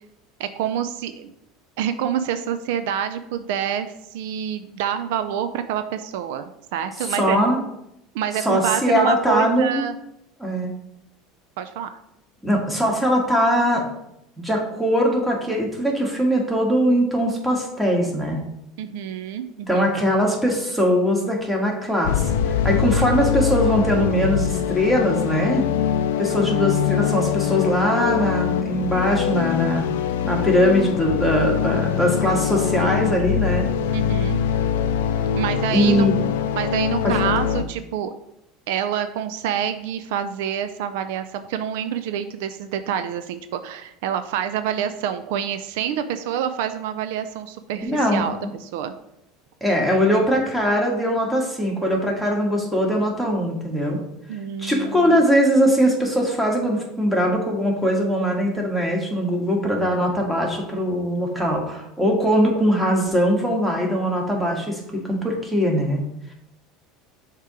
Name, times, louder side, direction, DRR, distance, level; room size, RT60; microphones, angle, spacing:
voice 1, 0.4-1.3 1.8-6.4 6.7-7.4 8.1-10.0 11.6-11.9 18.8-19.9 33.9-34.4 35.3-36.1 36.6-38.1 38.7-48.9 54.3-55.2, right 9 dB, 75° right, 10 dB, 0.4 m, -27 dB
voice 2, 7.2-7.6 8.4-9.9 10.4-10.7 12.4-13.9 14.4-18.4 19.7-25.6 26.2-29.9 30.2-33.7 35.7-36.2 37.0-37.3 47.8-48.5 49.6-54.0 54.6-66.0, equal, 5° right, -1 dB, 1.6 m, -21 dB
sound 1, 22.0-37.6, left 8 dB, 85° left, 0.4 m, -23 dB
6.6 x 2.9 x 4.8 m, 0.82 s
supercardioid pair, 105°, 0 cm